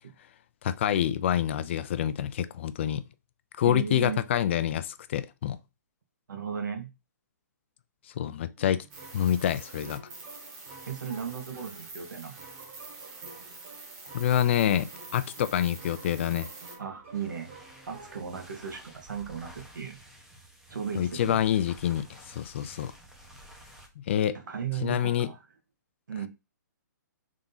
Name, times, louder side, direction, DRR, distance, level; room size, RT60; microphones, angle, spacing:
voice 1, 0.6-3.0 3.6-5.6 8.2-8.8 9.1-10.0 14.1-16.5 21.0-22.9 24.0-24.4 24.8-25.3, left 10 dB, 40° left, 0.3 m, -27 dB
voice 2, 3.7-4.2 6.3-6.9 10.9-12.4 16.8-17.5 17.9-20.0 20.7-21.4 24.3-25.4 26.1-26.3, right 7 dB, 80° right, 1.3 m, -36 dB
sound 1, 8.6-19.2, right 4 dB, 40° right, 1.4 m, -51 dB
sound 2, 8.9-16.8, right 3 dB, 25° right, 1.0 m, -46 dB
sound 3, 17.0-24.0, right 1 dB, 5° right, 0.6 m, -52 dB
3.6 x 2.8 x 3.9 m
hypercardioid pair, 160°, 10 cm